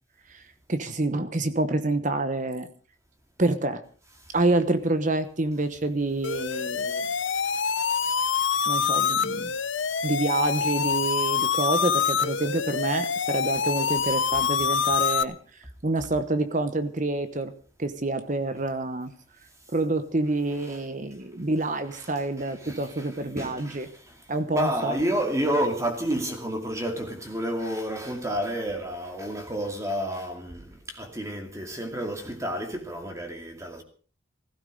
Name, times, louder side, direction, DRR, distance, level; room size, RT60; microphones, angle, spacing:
voice 1, 0.7-2.7 3.4-3.8 4.3-7.1 8.7-9.5 10.0-15.3 15.8-17.5 17.8-19.1 19.7-23.9 24.3-25.0, right 2 dB, 35° right, 1.0 m, -27 dB
sound 1, 6.2-15.2, left 6 dB, 65° left, 0.9 m, -26 dB
voice 2, 21.9-33.8, equal, 15° right, 2.4 m, -30 dB
16.5 x 15.5 x 5.3 m
head